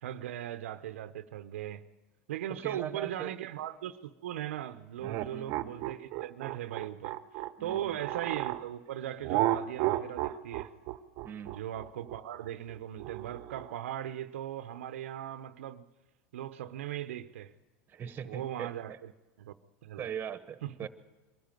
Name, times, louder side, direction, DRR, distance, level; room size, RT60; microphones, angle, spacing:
voice 1, 0.0-1.8 2.3-7.2 7.6-10.7 11.4-15.8 16.3-17.5 18.2-19.1 19.4-19.5 19.8-20.1 20.6-20.7, right 11 dB, 90° right, 0.8 m, -38 dB
voice 2, 2.6-3.3 5.0-5.8 7.6-8.0 11.2-11.5 17.9-19.0 20.0-20.9, right 8 dB, 30° right, 1.4 m, -41 dB
sound 1, 5.0-8.6 9.2-13.7, right 15 dB, 55° right, 0.9 m, -33 dB
22.5 x 13.5 x 9.1 m
supercardioid pair, 120°, 7 cm